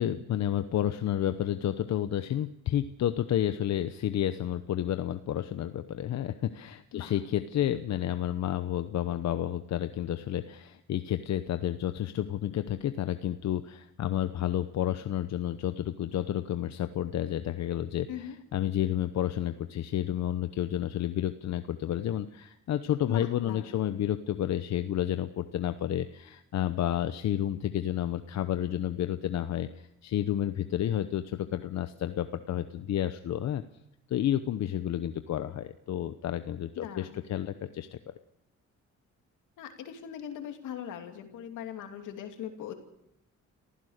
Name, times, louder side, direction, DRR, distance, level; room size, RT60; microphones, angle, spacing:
voice 1, 0.0-33.6 34.1-38.0, left 11 dB, 65° left, 10 dB, 0.9 m, -31 dB
voice 2, 23.1-23.7 36.8-37.2 39.6-42.7, left 9 dB, 85° left, 5 dB, 2.9 m, -40 dB
28.0 x 15.5 x 6.6 m, 0.82 s
cardioid pair, 90°, 30 cm